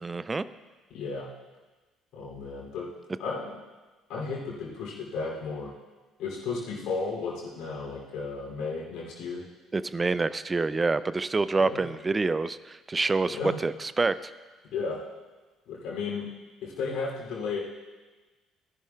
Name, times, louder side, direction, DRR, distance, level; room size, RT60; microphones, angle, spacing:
voice 1, 0.0-0.4 9.7-14.3, right 3 dB, 25° right, 15 dB, 0.4 m, -27 dB
voice 2, 0.9-1.3 2.1-2.9 3.2-3.5 4.1-5.7 6.2-9.4 11.6-11.8 13.3-13.6 14.7-15.0 15.7-16.3 16.6-17.6, left 4 dB, 60° left, -4 dB, 2.8 m, -34 dB
16.5 x 10.5 x 2.3 m, 1.3 s
hypercardioid pair, 50°, 0 cm